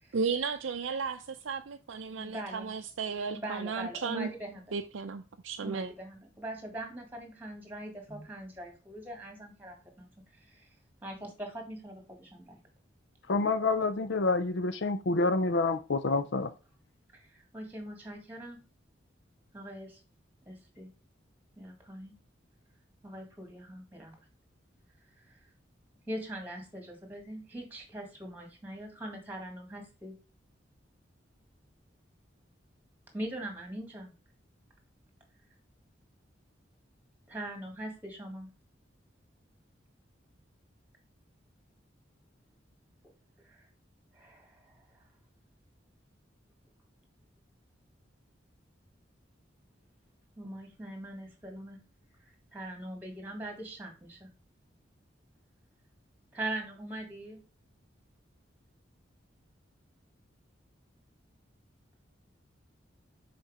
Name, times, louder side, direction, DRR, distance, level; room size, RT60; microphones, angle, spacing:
voice 1, 0.1-4.3 4.7-5.9, right 5 dB, 85° right, 0.5 m, -34 dB
voice 2, 2.1-2.7 3.3-4.6 5.6-10.1 10.4-10.6 11.0-12.6 17.1-18.6 19.5-20.0 20.5-20.9 21.6-22.1 23.0-24.1 26.1-30.1 33.1-34.1 37.3-38.5 43.5-43.6 44.1-44.7 50.4-51.8 52.5-54.3 56.3-57.4, right 1 dB, 10° right, 1.9 m, -41 dB
voice 3, 13.3-16.5, left 3 dB, 65° left, 0.6 m, -28 dB
6.4 x 4.4 x 4.9 m
head